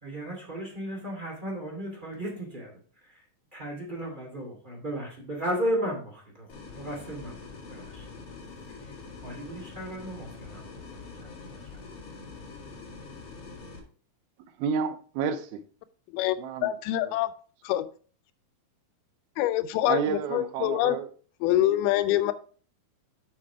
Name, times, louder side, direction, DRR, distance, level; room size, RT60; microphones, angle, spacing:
voice 1, 0.0-3.2 3.5-6.5 6.7-7.4 7.7-8.1 8.7-8.9 9.2-11.8, equal, 15° right, -1 dB, 1.7 m, -35 dB
sound 1, 6.5-13.8, left 4 dB, 45° left, 2.7 m, -44 dB
voice 2, 14.6-15.6 16.4-16.7 17.0-17.2 19.9-21.1, right 6 dB, 85° right, 10 dB, 2.7 m, -30 dB
voice 3, 16.1-17.3 17.7-17.9 19.4-21.0 21.4-22.3, left 14 dB, 85° left, 12 dB, 2.5 m, -25 dB
7.3 x 5.8 x 4.6 m, 0.41 s
omnidirectional pair, 4.3 m